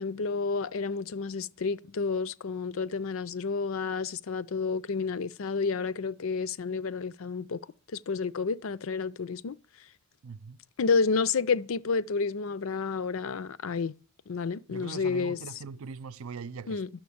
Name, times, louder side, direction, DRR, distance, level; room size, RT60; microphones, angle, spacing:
voice 1, 0.0-7.6 7.9-9.6 10.8-13.9 14.3-15.4 16.7-16.9, left 4 dB, 70° left, 0.5 m, -30 dB
voice 2, 10.2-10.6 14.7-16.8, right 5 dB, 80° right, 0.5 m, -41 dB
11.5 x 7.0 x 8.5 m
head